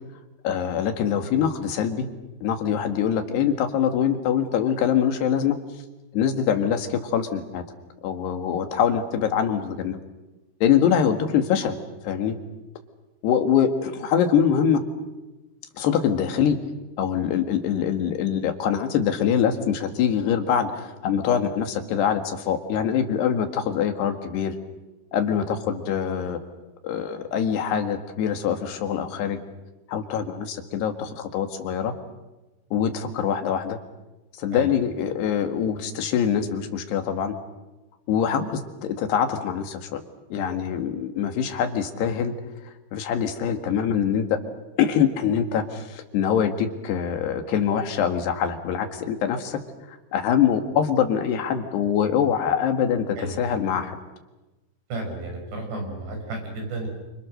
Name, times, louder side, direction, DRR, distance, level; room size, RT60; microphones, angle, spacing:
voice 1, 0.4-2.1 2.4-5.6 6.1-7.6 8.0-10.0 10.6-11.8 12.0-12.4 13.2-14.8 15.8-16.6 17.0-24.5 25.1-26.4 26.8-29.4 29.9-31.9 32.7-33.8 34.4-37.3 38.1-40.0 40.3-42.3 42.9-44.3 44.8-49.6 49.9-54.0, left 8 dB, 80° left, 6 dB, 3.9 m, -24 dB
voice 2, 54.9-56.9, right 2 dB, 90° right, 2 dB, 8.6 m, -32 dB
29.5 x 27.0 x 6.6 m, 1.1 s
omnidirectional pair, 4.7 m